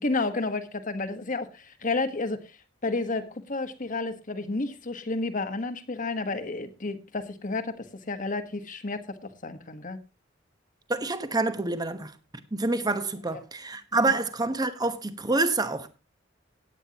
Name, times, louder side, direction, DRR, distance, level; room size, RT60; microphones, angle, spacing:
voice 1, 0.0-2.5 2.8-10.0 13.3-13.4 14.1-14.2, left 3 dB, 45° left, 1.3 m, -31 dB
voice 2, 10.9-12.2 12.5-15.9, right 3 dB, 20° right, 1.1 m, -27 dB
17.0 x 9.1 x 2.9 m
head